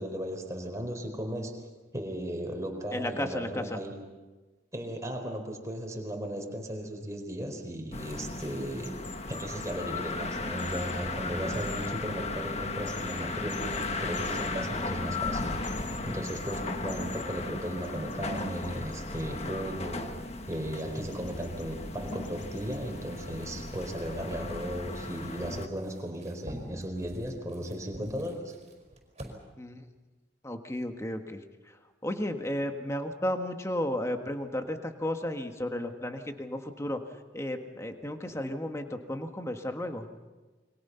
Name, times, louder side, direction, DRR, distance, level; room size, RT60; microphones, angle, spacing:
voice 1, 0.0-1.5 1.9-3.9 4.7-8.9 9.3-15.5 16.0-20.1 20.5-28.5, equal, 15° right, 2 dB, 4.4 m, -36 dB
voice 2, 2.9-3.8 29.6-29.8 30.4-31.4 32.0-37.0 37.3-40.1, left 1 dB, 15° left, 5 dB, 1.7 m, -33 dB
sound 1, 7.9-25.7, left 3 dB, 35° left, 1.4 m, -36 dB
sound 2, 8.8-9.7 10.6-10.9 11.5-11.9 12.9-13.2 13.5-13.8 14.1-14.5 15.6-16.0 16.2-16.6 16.9-17.2 17.8-19.2 20.8-21.6 22.1-22.8, left 6 dB, 65° left, 2.9 m, -47 dB
sound 3, 22.4-29.3, equal, 35° right, 4.9 m, -49 dB
29.5 x 24.0 x 5.8 m, 1.2 s
head